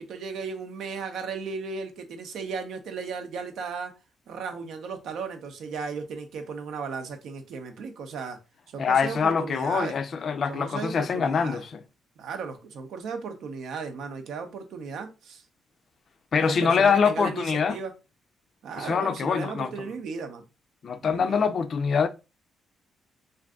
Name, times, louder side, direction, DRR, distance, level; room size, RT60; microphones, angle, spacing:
voice 1, 0.0-3.9 4.3-8.4 8.7-10.0 10.5-11.6 12.2-15.4 16.4-17.9 18.6-20.4 21.0-21.4, right 5 dB, 75° right, 0.6 m, -35 dB
voice 2, 8.8-11.8 16.3-17.8 18.8-19.7 20.8-22.1, left 6 dB, 50° left, 0.4 m, -24 dB
2.6 x 2.5 x 3.5 m
cardioid pair, 90°, 0 cm